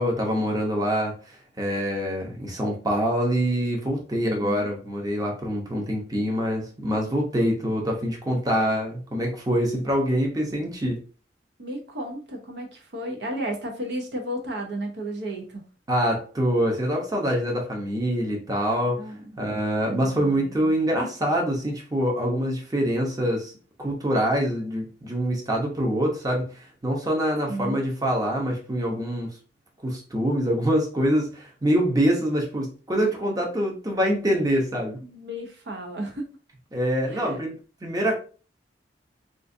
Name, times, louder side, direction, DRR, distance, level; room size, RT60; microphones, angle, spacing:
voice 1, 0.0-11.0 15.9-19.0 19.4-23.5 23.8-29.3 29.8-35.0 36.7-37.5 37.8-38.2, equal, 20° right, 0 dB, 0.8 m, -25 dB
voice 2, 4.2-4.7 11.6-15.6 19.0-19.4 19.7-20.7 27.5-27.8 35.0-36.3 37.1-37.4, right 1 dB, 70° right, 2 dB, 0.7 m, -33 dB
3.8 x 2.4 x 2.6 m, 0.37 s
head